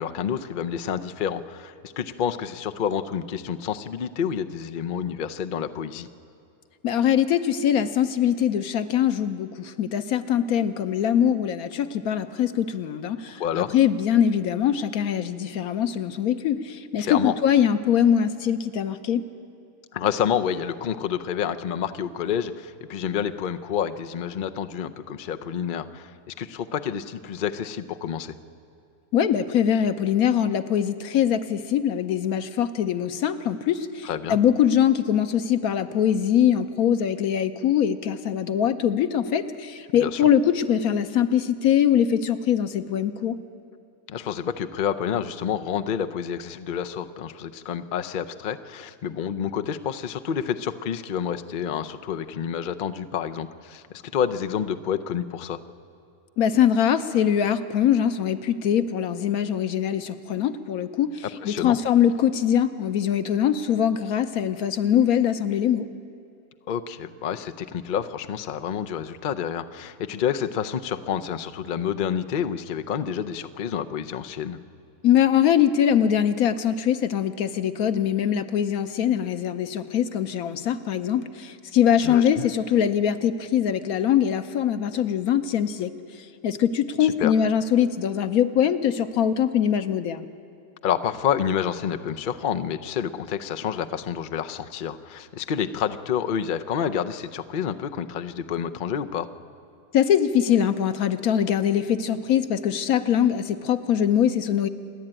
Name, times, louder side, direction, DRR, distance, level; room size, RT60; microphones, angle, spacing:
voice 1, 0.0-6.1 13.4-13.7 17.0-17.3 19.9-28.3 34.0-34.4 40.0-40.2 44.1-55.6 61.4-61.8 66.7-74.6 82.0-82.5 87.0-87.3 90.8-99.3, left 8 dB, 85° left, 9 dB, 0.4 m, -29 dB
voice 2, 6.8-19.2 29.1-43.4 56.4-65.9 75.0-85.9 86.4-90.2 99.9-104.7, left 9 dB, 65° left, 11 dB, 1.2 m, -22 dB
27.5 x 11.0 x 8.9 m, 2.6 s
omnidirectional pair, 1.8 m